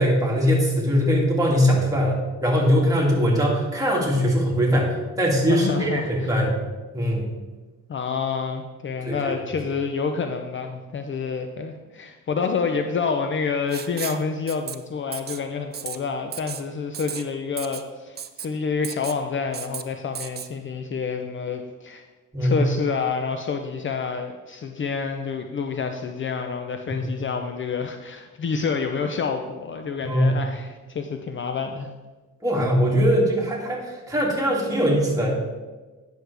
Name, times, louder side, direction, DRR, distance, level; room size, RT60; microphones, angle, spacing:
voice 1, 0.0-6.6 6.9-7.2 9.0-9.4 22.3-22.6 27.0-27.1 30.0-30.4 32.4-35.3, equal, 10° right, -3 dB, 2.4 m, -21 dB
voice 2, 5.5-6.4 7.9-22.0 22.4-31.9, left 5 dB, 40° left, 6 dB, 0.6 m, -28 dB
Writing, 13.7-14.2 14.5-14.8 15.1-15.4 15.7-16.0 16.3-16.6 16.9-17.2 17.6-17.8 18.2-18.5 18.8-19.2 19.5-19.8 20.2-20.5, right 8 dB, 35° right, 0.5 m, -34 dB
9.5 x 6.4 x 3.4 m, 1.2 s
cardioid pair, 90°, 30 cm